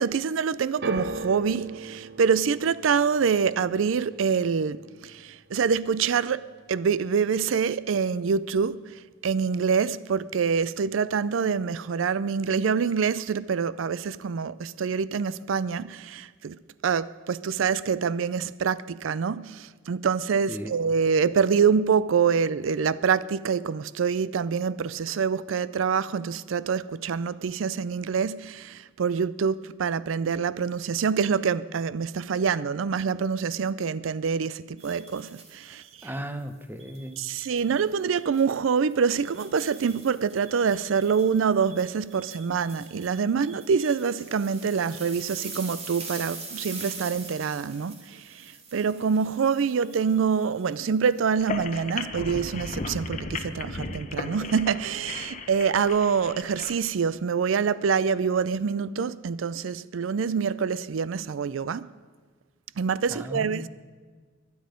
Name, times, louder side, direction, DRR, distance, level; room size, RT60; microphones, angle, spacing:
voice 1, 0.0-8.9 9.2-36.1 37.2-61.9 62.8-63.7, right 6 dB, 85° right, 0.4 m, -26 dB
sound 1, 0.8-7.1 7.4-8.0 8.8-8.9, right 2 dB, 55° right, 0.7 m, -40 dB
sound 2, 34.8-36.1 36.8-37.7 38.2-38.4 38.9-51.1, right 4 dB, 35° right, 2.3 m, -43 dB
voice 2, 35.7-37.2 63.1-63.7, right 1 dB, 10° right, 0.9 m, -36 dB
sound 3, 51.3-56.7, left 3 dB, 40° left, 1.1 m, -35 dB
22.5 x 9.6 x 5.1 m
head